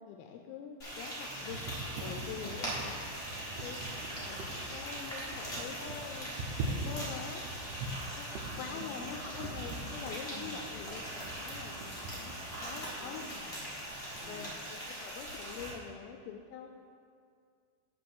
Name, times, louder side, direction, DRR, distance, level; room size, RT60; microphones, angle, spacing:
voice 1, 0.0-1.6 2.0-2.9 3.3-3.8 4.3-7.4 8.1-11.1 11.4-13.3 14.3-16.8, left 7 dB, 85° left, 3 dB, 2.4 m, -45 dB
Frying (food), 0.8-15.7, equal, 65° left, 0.6 m, -41 dB
sound 1, 0.9-14.2, right 2 dB, 75° right, 2.2 m, -43 dB
voice 2, 2.2-2.6 8.5-9.1 10.3-10.6 13.0-13.6 14.2-14.4, right 1 dB, 20° right, -9 dB, 1.1 m, -51 dB
7.5 x 4.6 x 7.1 m, 2.2 s
omnidirectional pair, 4.2 m